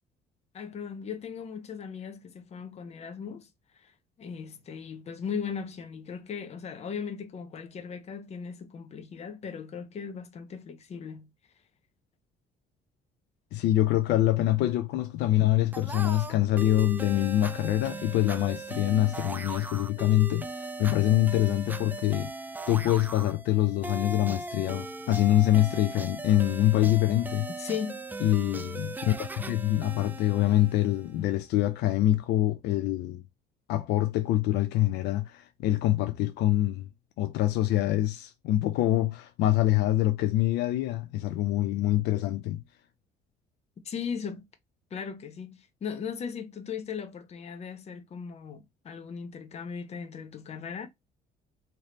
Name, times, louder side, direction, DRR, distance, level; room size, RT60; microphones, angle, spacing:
voice 1, 0.5-3.5 3.8-11.3 27.6-28.0 43.8-44.5 44.9-50.9, left 6 dB, 40° left, 0.8 m, -38 dB
voice 2, 13.5-22.3 22.7-27.5 28.2-33.2 33.7-36.9 37.2-42.6, left 14 dB, 85° left, 0.5 m, -25 dB
sound 1, 15.7-31.2, right 3 dB, 10° right, 0.4 m, -39 dB
3.3 x 2.9 x 3.9 m
cardioid pair, 110°, 17 cm